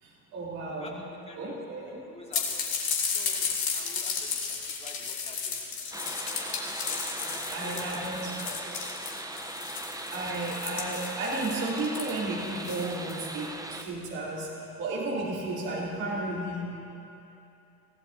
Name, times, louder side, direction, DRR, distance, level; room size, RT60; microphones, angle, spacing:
voice 1, 0.0-1.0 1.4-2.0 7.1-8.5 10.1-14.5 14.8-16.9, right 2 dB, 70° right, -6 dB, 3.6 m, -33 dB
voice 2, 0.8-2.8 3.1-6.1 7.2-8.1 8.4-9.2 9.5-9.6, left 2 dB, 15° left, -2 dB, 2.5 m, -49 dB
sound 1, 2.3-13.4, left 6 dB, 55° left, 2.4 m, -34 dB
sound 2, 5.9-13.8, right 2 dB, 10° right, 0.8 m, -39 dB
23.5 x 16.0 x 2.8 m, 2.9 s
hypercardioid pair, 50°, 44 cm